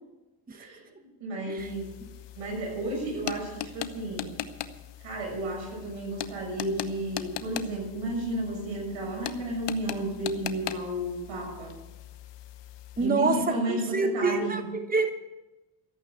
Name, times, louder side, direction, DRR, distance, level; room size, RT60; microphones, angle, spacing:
voice 1, 0.5-0.8 1.2-1.9 2.4-4.4 5.0-11.7 13.0-14.6, right 1 dB, 75° right, 0 dB, 6.7 m, -32 dB
sound 1, 1.6-13.1, left 11 dB, 65° left, 1.0 m, -40 dB
voice 2, 13.0-15.1, right 4 dB, 20° right, 8 dB, 1.1 m, -27 dB
14.0 x 8.6 x 8.3 m, 1.1 s
supercardioid pair, 65°, 46 cm